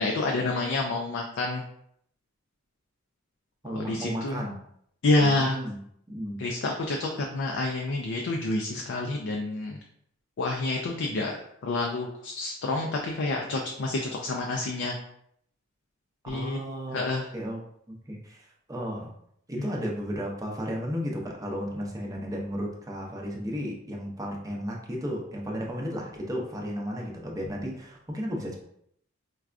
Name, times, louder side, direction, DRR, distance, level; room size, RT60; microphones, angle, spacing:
voice 1, 0.0-1.6 3.7-4.5 5.0-5.6 6.4-9.8 10.4-14.9 16.3-16.6 16.9-17.3 19.6-19.7, left 2 dB, 60° left, 1 dB, 0.4 m, -28 dB
voice 2, 3.6-4.6 5.2-5.8 6.1-6.4 16.3-19.1 19.5-28.6, equal, 15° right, -1 dB, 0.6 m, -34 dB
4.6 x 2.2 x 2.4 m, 0.70 s
head